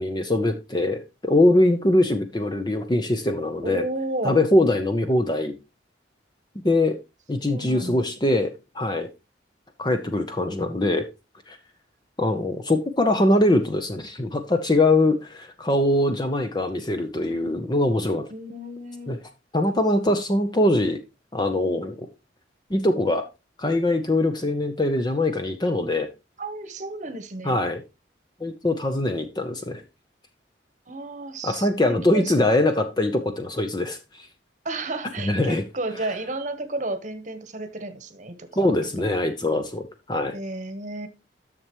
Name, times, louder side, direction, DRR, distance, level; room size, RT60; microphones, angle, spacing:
voice 1, 0.0-3.9 4.2-5.5 6.6-7.0 7.3-9.1 9.8-11.1 11.5-11.6 12.2-18.3 19.1-19.2 19.5-21.0 21.3-22.1 22.7-23.3 23.6-26.1 27.4-27.8 28.4-29.8 31.4-34.3 35.2-35.6 38.6-40.4, left 1 dB, 25° left, 0.7 m, -22 dB
voice 2, 3.6-4.4 7.4-8.0 18.3-19.2 26.4-27.6 30.9-31.7 32.1-32.5 34.6-39.1 40.3-41.1, right 2 dB, 40° right, 1.1 m, -32 dB
10.5 x 6.7 x 3.0 m
head